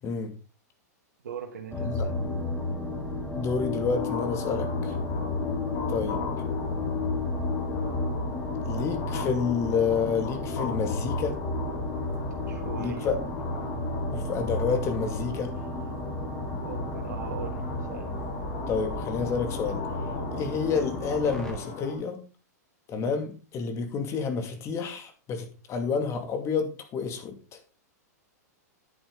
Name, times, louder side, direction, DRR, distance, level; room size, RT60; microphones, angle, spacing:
voice 1, 0.0-0.3 1.8-2.1 3.3-5.0 5.9-6.2 8.6-11.4 12.8-13.2 14.1-15.5 18.7-19.8 20.3-22.2 22.9-27.6, left 5 dB, 30° left, 6 dB, 2.3 m, -29 dB
voice 2, 1.2-2.2 12.5-13.3 16.6-17.6 17.9-18.1, right 7 dB, 85° right, 1 dB, 2.0 m, -39 dB
sound 1, 1.7-21.5, left 2 dB, 5° left, 2.9 m, -32 dB
sound 2, 3.9-22.0, left 5 dB, 50° left, 5.8 m, -39 dB
10.5 x 8.2 x 3.8 m, 0.33 s
hypercardioid pair, 125°, 9 cm